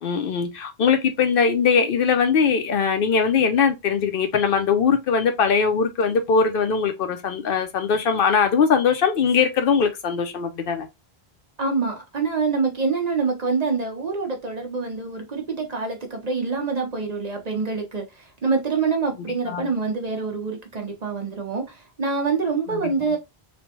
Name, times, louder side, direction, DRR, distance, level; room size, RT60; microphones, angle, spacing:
voice 1, 0.0-10.9 19.5-19.7 22.7-22.8, left 6 dB, 65° left, 0.7 m, -21 dB
voice 2, 11.6-18.1 18.4-23.2, right 4 dB, 45° right, 0.7 m, -25 dB
3.1 x 2.1 x 2.8 m
omnidirectional pair, 1.1 m